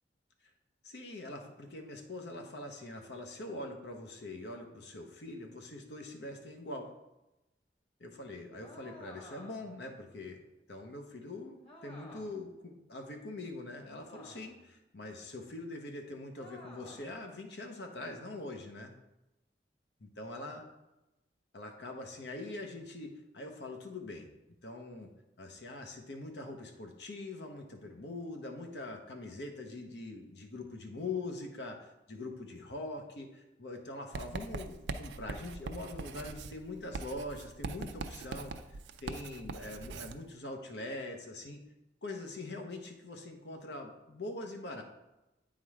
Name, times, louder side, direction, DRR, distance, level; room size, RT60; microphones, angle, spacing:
voice 1, 0.8-6.9 8.0-10.4 10.7-18.9 20.0-20.6 21.5-24.3 24.6-25.1 25.4-38.5 39.0-41.6 42.0-44.8, left 2 dB, 75° left, 3 dB, 0.9 m, -43 dB
sound 1, 8.6-9.8 11.6-12.5 14.0-14.7 16.4-17.2, left 1 dB, 30° left, 1.2 m, -52 dB
Writing, 34.1-40.2, right 3 dB, 85° right, 0.5 m, -42 dB
8.9 x 3.8 x 4.8 m, 0.96 s
head